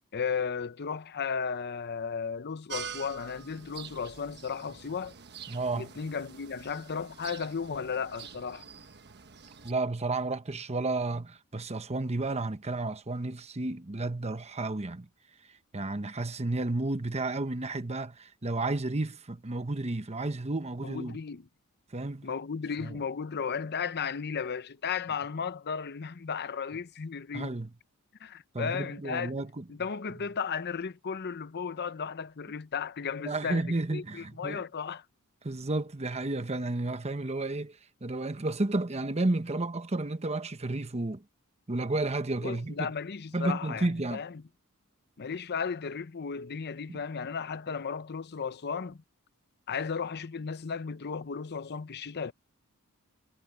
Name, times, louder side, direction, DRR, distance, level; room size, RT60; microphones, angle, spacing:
voice 1, 0.1-5.1 5.7-8.6 20.8-21.5 22.2-27.6 28.2-29.3 29.7-35.0 42.4-44.4 45.2-49.0 49.7-52.3, left 6 dB, 50° left, 0.7 m, -35 dB
sound 1, 2.7-9.7, right 7 dB, 50° right, 1.3 m, -46 dB
voice 2, 5.5-5.9 9.6-15.1 15.7-21.2 21.9-22.3 22.8-23.0 27.3-27.7 28.5-29.6 33.2-34.6 35.4-41.2 41.7-42.9 43.3-44.2 46.9-47.0, right 2 dB, 30° right, 1.0 m, -32 dB
head